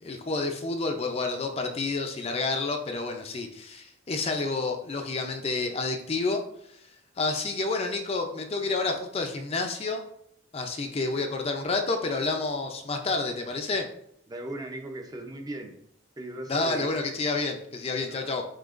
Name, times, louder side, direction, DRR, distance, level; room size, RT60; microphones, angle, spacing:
voice 1, 0.0-6.4 6.7-6.8 7.2-10.0 10.5-13.9 16.5-18.4, left 3 dB, 30° left, 4 dB, 0.4 m, -29 dB
voice 2, 14.3-15.7 16.2-16.9 18.1-18.4, right 1 dB, 20° right, 4 dB, 0.5 m, -38 dB
7.5 x 2.8 x 2.5 m, 0.73 s
head